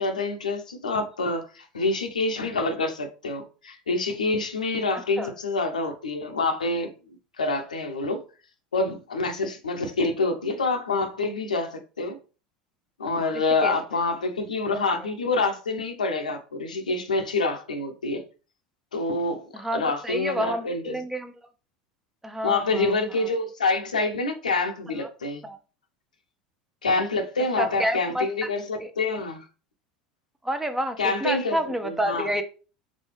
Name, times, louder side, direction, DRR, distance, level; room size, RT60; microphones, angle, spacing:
voice 1, 0.0-6.9 7.4-8.2 8.7-12.2 13.0-18.2 18.9-21.0 22.4-25.4 26.8-29.4 31.0-31.6 31.8-32.3, left 3 dB, 90° left, 0.7 m, -27 dB
voice 2, 19.5-21.3 22.2-22.9 25.4-25.6 27.6-28.5 28.8-28.9 30.4-32.4, equal, 10° right, 0.7 m, -29 dB
4.1 x 3.6 x 3.2 m
hypercardioid pair, 75°, 4 cm